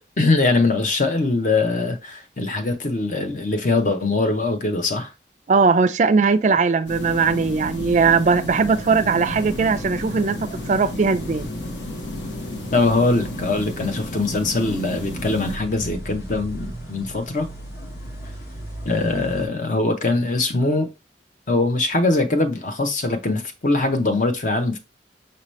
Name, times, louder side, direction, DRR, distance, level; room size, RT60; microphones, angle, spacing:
voice 1, 0.0-5.1 12.7-17.5 18.9-20.9 21.5-24.8, left 3 dB, 45° left, 0.6 m, -22 dB
voice 2, 5.5-10.4 10.7-11.5, right 4 dB, 40° right, 0.4 m, -19 dB
sound 1, 6.9-15.6, left 1 dB, 85° left, 1.0 m, -32 dB
sound 2, 9.0-19.5, right 1 dB, 60° left, 1.2 m, -39 dB
5.3 x 2.8 x 3.1 m
head